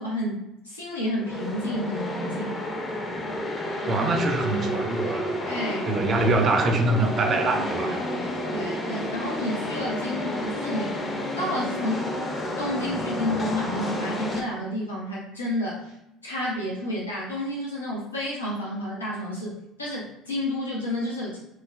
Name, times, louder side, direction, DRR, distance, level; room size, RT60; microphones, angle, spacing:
voice 1, 0.0-2.6 5.4-5.9 7.5-11.0 11.3-12.1 12.6-16.0 16.2-21.4, left 1 dB, 85° left, 0.5 m, -30 dB
sound 1, 1.2-14.4, left 1 dB, 30° left, 0.6 m, -30 dB
voice 2, 3.9-5.5 5.9-8.0, right 2 dB, 40° right, 0.4 m, -24 dB
3.0 x 2.0 x 2.4 m
figure-of-eight pair, 65°, 0 cm